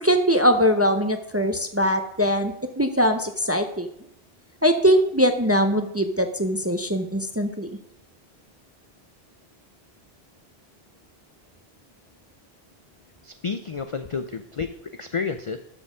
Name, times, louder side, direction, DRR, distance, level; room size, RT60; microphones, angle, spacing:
voice 1, 0.0-3.9 4.6-7.7, equal, 20° right, 6 dB, 0.5 m, -21 dB
voice 2, 13.2-15.6, left 5 dB, 50° left, 9 dB, 0.4 m, -30 dB
12.0 x 4.3 x 4.9 m, 0.76 s
omnidirectional pair, 1.1 m